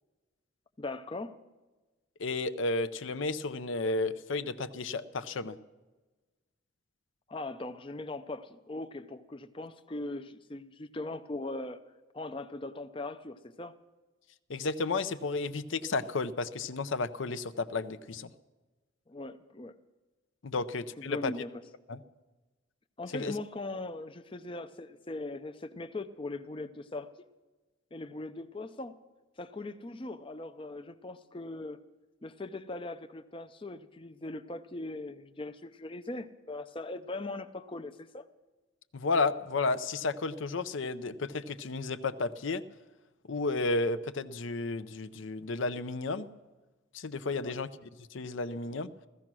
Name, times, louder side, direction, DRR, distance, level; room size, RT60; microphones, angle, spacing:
voice 1, 0.8-1.4 7.3-11.8 12.1-13.8 19.1-19.7 20.6-20.7 21.0-21.6 23.0-27.2 27.9-29.0 29.4-31.8 32.2-38.2 47.4-47.6, left 2 dB, 25° left, 9 dB, 0.5 m, -40 dB
voice 2, 2.2-5.6 14.5-18.3 20.4-21.3 21.9-22.0 23.1-23.3 38.9-42.6 43.3-46.3 46.9-47.7 48.1-48.9, left 3 dB, 70° left, 13 dB, 0.6 m, -32 dB
15.0 x 15.0 x 6.1 m, 1.2 s
head